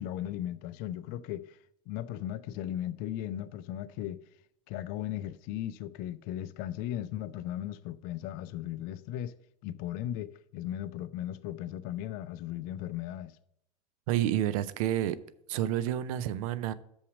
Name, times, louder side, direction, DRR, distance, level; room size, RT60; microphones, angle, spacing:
voice 1, 0.0-1.6 1.9-4.2 4.7-9.4 9.6-13.4, left 12 dB, 45° left, 0.4 m, -37 dB
voice 2, 14.1-15.2 15.5-16.7, right 12 dB, 55° right, 0.5 m, -29 dB
6.4 x 5.6 x 6.2 m
figure-of-eight pair, 75°, 21 cm